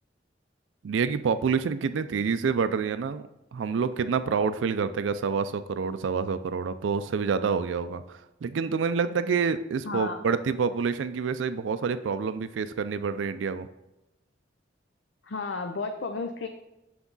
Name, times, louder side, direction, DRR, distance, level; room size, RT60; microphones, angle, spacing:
voice 1, 0.8-3.2 3.5-13.7, right 5 dB, 90° right, 12 dB, 0.4 m, -27 dB
voice 2, 9.8-10.2 15.2-16.5, left 4 dB, 75° left, 6 dB, 0.5 m, -32 dB
7.1 x 5.9 x 3.9 m, 0.93 s
head